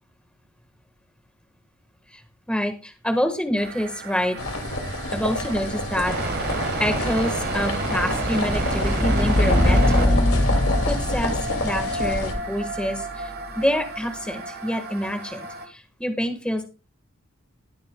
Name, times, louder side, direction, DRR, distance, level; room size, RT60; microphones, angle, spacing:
voice 1, 2.5-4.4 5.1-6.1 6.8-10.2 10.9-16.6, equal, 5° left, 5 dB, 1.3 m, -27 dB
sound 1, 3.6-15.7, right 2 dB, 45° right, 1.4 m, -31 dB
sound 2, 4.4-12.3, left 2 dB, 85° left, 2.2 m, -28 dB
sound 3, 7.3-13.7, left 1 dB, 30° left, 1.9 m, -24 dB
20.5 x 6.9 x 2.2 m, 0.31 s
head